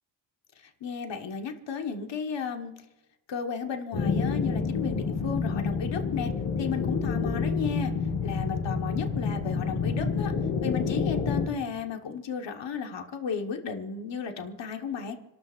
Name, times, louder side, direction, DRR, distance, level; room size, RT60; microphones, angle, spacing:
voice 1, 0.8-2.7 3.3-6.3 6.6-7.9 8.2-10.3 10.6-15.2, left 6 dB, 70° left, 4 dB, 1.4 m, -34 dB
sound 1, 3.9-11.5, left 5 dB, 85° left, 2.0 m, -28 dB
29.0 x 12.5 x 2.5 m, 1.0 s
wide cardioid pair, 160°, 45 cm